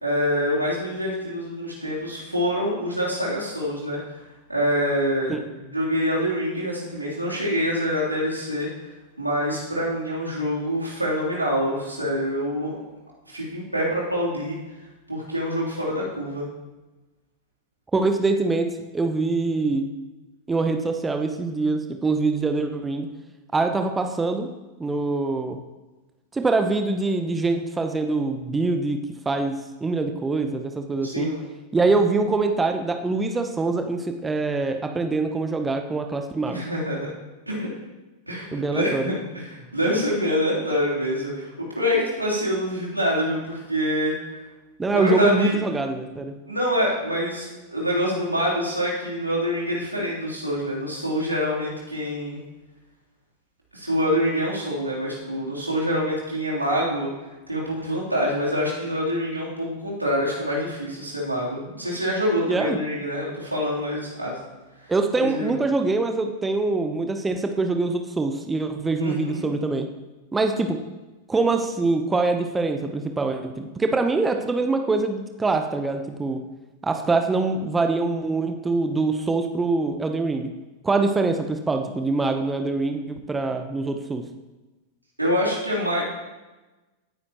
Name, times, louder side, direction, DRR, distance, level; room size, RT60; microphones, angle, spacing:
voice 1, 0.0-4.2 4.5-8.7 9.2-12.7 13.3-14.6 15.1-16.5 31.0-31.4 36.5-37.1 37.5-37.7 38.3-44.2 44.9-45.6 46.5-52.4 53.7-57.1 57.5-64.4 65.2-65.6 69.0-69.5 85.2-86.0, equal, 85° right, -6 dB, 3.3 m, -26 dB
voice 2, 17.9-18.7 18.9-19.9 20.5-23.1 23.5-24.5 24.8-25.6 26.3-31.3 31.7-36.6 38.5-39.1 44.8-46.4 62.5-62.8 64.9-69.9 70.3-70.8 71.3-76.4 76.8-80.5 80.8-84.2, right 3 dB, 15° right, 6 dB, 0.9 m, -24 dB
17.0 x 9.6 x 3.0 m, 1.1 s
figure-of-eight pair, 90°, 0 cm